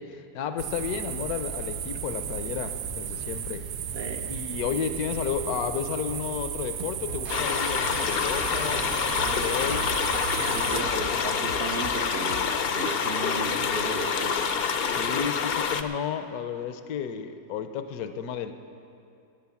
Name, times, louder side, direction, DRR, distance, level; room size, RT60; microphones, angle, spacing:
voice 1, 0.0-3.7 4.3-9.9 10.6-10.8 14.8-18.5, left 8 dB, 75° left, 9 dB, 1.2 m, -32 dB
sound 1, 0.6-10.8, right 8 dB, 85° right, 1.3 m, -34 dB
voice 2, 3.9-4.3 10.4-14.4 14.8-15.0, right 4 dB, 50° right, 3 dB, 0.8 m, -35 dB
sound 2, 7.0-13.7, right 2 dB, 70° right, 1.6 m, -43 dB
sound 3, 7.3-15.8, left 6 dB, 55° left, 0.7 m, -27 dB
17.0 x 8.5 x 7.1 m, 2.6 s
omnidirectional pair, 1.7 m